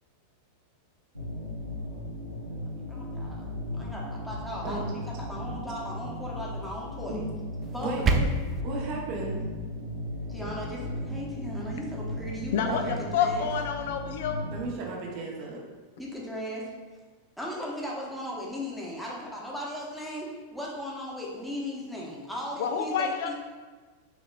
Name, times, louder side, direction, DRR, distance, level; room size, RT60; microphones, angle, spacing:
sound 1, 1.1-14.7, left 1 dB, 85° right, 0.8 m, -36 dB
voice 1, 2.8-7.2 7.7-8.1 10.3-13.5 16.0-16.7 17.4-23.3, equal, ahead, -4 dB, 0.9 m, -37 dB
sound 2, 7.6-8.6, right 3 dB, 25° right, 0.3 m, -26 dB
voice 2, 7.8-8.2 8.6-9.5 12.7-13.0 14.4-15.6, right 2 dB, 45° right, -2 dB, 0.8 m, -34 dB
voice 3, 13.1-14.4 22.6-23.3, left 7 dB, 55° left, 5 dB, 0.3 m, -28 dB
5.8 x 3.0 x 2.2 m, 1.4 s
figure-of-eight pair, 90°, 0 cm